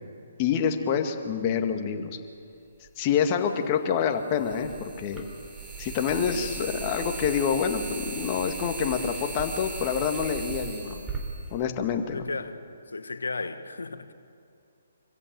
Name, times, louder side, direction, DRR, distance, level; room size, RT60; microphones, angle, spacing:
voice 1, 0.4-2.1 3.0-5.3 5.8-11.0 11.5-12.3, left 7 dB, 30° left, 2.0 m, -27 dB
sound 1, 2.9-3.0 4.3-12.2, right 4 dB, 15° right, 4.1 m, -37 dB
voice 2, 6.3-6.7 10.6-11.1 12.0-14.1, left 3 dB, 80° left, 1.5 m, -36 dB
26.0 x 15.0 x 8.8 m
figure-of-eight pair, 140°, 0 cm